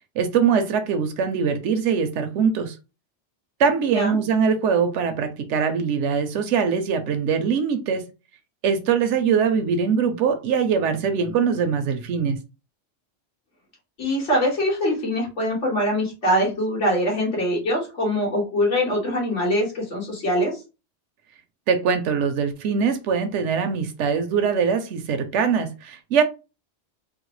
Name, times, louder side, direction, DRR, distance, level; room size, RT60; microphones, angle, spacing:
voice 1, 0.2-2.8 3.6-8.0 8.6-12.4 21.7-26.2, right 6 dB, 85° right, 0.9 m, -22 dB
voice 2, 14.0-20.6, equal, 80° left, 2.0 m, -23 dB
3.7 x 2.1 x 3.1 m
omnidirectional pair, 1.2 m